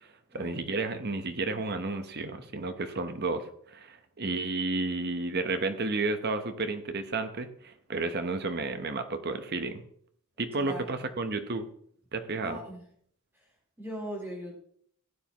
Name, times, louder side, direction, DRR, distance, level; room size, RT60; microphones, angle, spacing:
voice 1, 0.3-9.8 10.4-11.6 12.1-12.6, right 3 dB, 45° right, 8 dB, 1.0 m, -32 dB
voice 2, 10.6-11.0 12.4-12.8 13.8-14.6, equal, 10° right, -3 dB, 4.0 m, -39 dB
16.0 x 9.6 x 3.1 m, 0.63 s
head